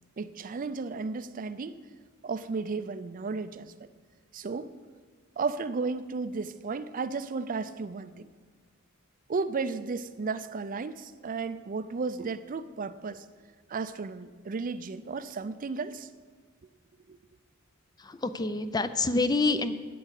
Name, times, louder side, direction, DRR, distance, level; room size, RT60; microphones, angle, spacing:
voice 1, 0.2-1.8 2.2-3.9 4.3-4.7 5.4-8.3 9.3-13.3 13.7-16.1 17.1-17.2, right 4 dB, 40° right, 13 dB, 0.4 m, -34 dB
voice 2, 18.0-19.7, left 3 dB, 20° left, 11 dB, 0.5 m, -27 dB
9.3 x 8.4 x 8.1 m, 1.5 s
head